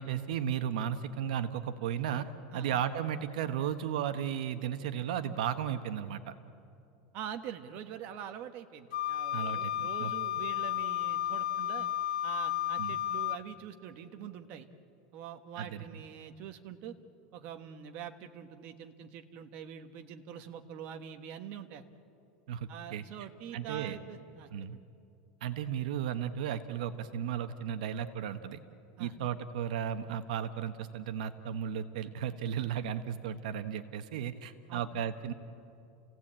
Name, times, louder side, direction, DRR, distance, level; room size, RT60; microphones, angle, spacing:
voice 1, 0.0-2.3 2.5-6.3 9.3-10.1 12.8-13.0 15.6-15.8 22.5-23.0 23.5-24.0 24.5-24.8 25.4-28.6 29.0-35.3, right 9 dB, 75° right, 9 dB, 1.1 m, -35 dB
voice 2, 7.1-11.9 12.2-14.7 15.1-16.9 17.3-21.8 22.7-24.8 29.0-29.2 34.7-34.8, right 9 dB, 40° right, 7 dB, 1.3 m, -44 dB
Wind instrument woodwind instrument, 8.9-13.4, left 12 dB, 80° left, 0.7 m, -33 dB
30.0 x 17.0 x 8.7 m, 2.6 s
supercardioid pair, 165°, 4 cm